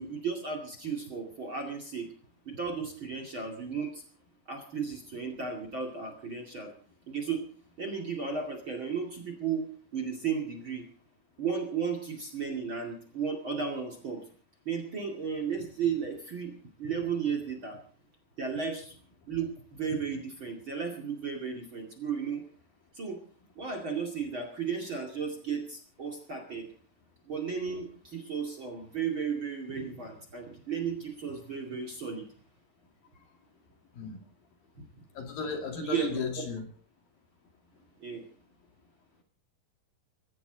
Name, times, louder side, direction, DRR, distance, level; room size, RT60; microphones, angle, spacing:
voice 1, 0.0-2.1 2.5-4.0 4.5-6.7 7.1-7.4 7.8-9.7 9.9-10.8 11.4-14.2 14.7-17.8 18.4-18.9 19.3-22.4 22.9-23.2 23.6-26.7 27.3-32.3 35.8-36.3 38.0-38.2, right 6 dB, 35° right, 4 dB, 2.5 m, -34 dB
voice 2, 35.2-36.7, left 5 dB, 60° left, 4 dB, 3.9 m, -35 dB
19.5 x 17.0 x 4.0 m, 0.43 s
omnidirectional pair, 4.9 m